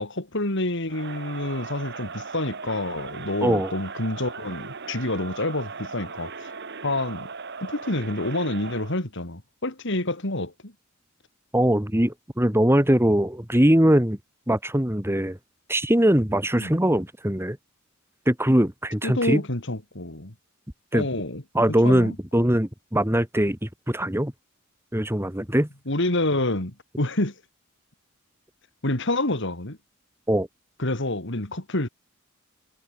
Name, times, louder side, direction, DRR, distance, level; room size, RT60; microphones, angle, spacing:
voice 1, 0.0-6.5 6.8-7.3 7.6-10.7 16.6-16.8 19.0-20.3 20.9-21.4 21.8-22.2 25.9-27.3 28.8-29.8 30.8-31.9, left 2 dB, 65° left, 3.8 m, -28 dB
Crowd, 0.9-9.0, right 5 dB, 55° right, 2.5 m, -38 dB
voice 2, 11.5-14.2 14.5-15.4 15.7-17.6 18.3-19.4 20.9-21.1 21.5-24.3 24.9-25.7 30.3-30.5, right 1 dB, 10° right, 2.2 m, -21 dB
head